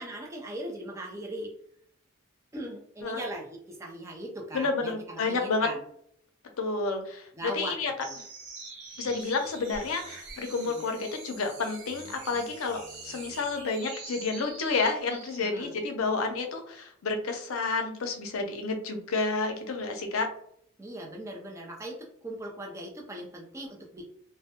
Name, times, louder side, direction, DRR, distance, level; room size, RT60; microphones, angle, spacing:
voice 1, 0.0-1.5 2.5-5.8 7.3-7.8 8.0-8.2 10.6-10.8 15.4-15.7 20.8-24.0, right 1 dB, 15° right, -1 dB, 0.3 m, -39 dB
voice 2, 4.5-5.7 6.6-7.9 9.0-20.3, left 4 dB, 90° left, 5 dB, 0.5 m, -30 dB
sound 1, 8.0-15.6, right 3 dB, 55° right, 0.6 m, -45 dB
2.1 x 2.1 x 2.8 m, 0.66 s
head